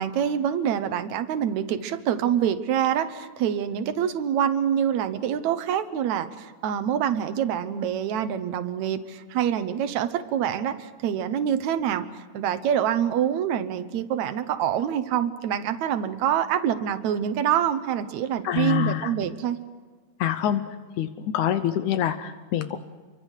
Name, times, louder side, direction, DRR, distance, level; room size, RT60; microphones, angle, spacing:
voice 1, 0.0-19.6, right 9 dB, 70° right, 9 dB, 1.7 m, -26 dB
voice 2, 18.4-19.1 20.2-20.6 21.0-22.8, left 11 dB, 85° left, 10 dB, 1.7 m, -25 dB
28.5 x 24.5 x 6.5 m, 1.4 s
omnidirectional pair, 4.7 m